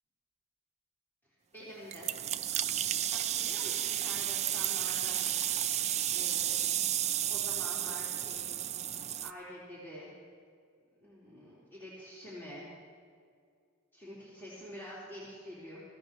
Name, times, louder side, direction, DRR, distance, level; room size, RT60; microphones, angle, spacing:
voice 1, 1.5-2.1 3.1-5.2 6.1-6.7 7.3-8.5 9.2-10.2 11.0-12.7 13.9-15.8, equal, 10° left, -10 dB, 3.8 m, -47 dB
sound 1, 1.9-9.3, right 11 dB, 30° right, 0.4 m, -32 dB
22.5 x 16.0 x 3.1 m, 2.2 s
head